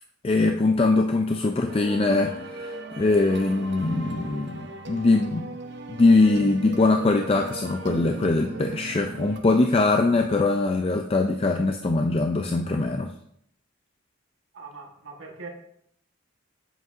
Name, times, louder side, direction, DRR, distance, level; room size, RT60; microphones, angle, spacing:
voice 1, 0.2-5.5 5.9-13.1, left 3 dB, 30° left, 0.4 m, -22 dB
sound 1, 1.7-9.4, right 1 dB, 55° right, 0.7 m, -37 dB
voice 2, 14.5-15.5, right 4 dB, 80° right, 1.3 m, -41 dB
8.0 x 7.6 x 2.5 m
head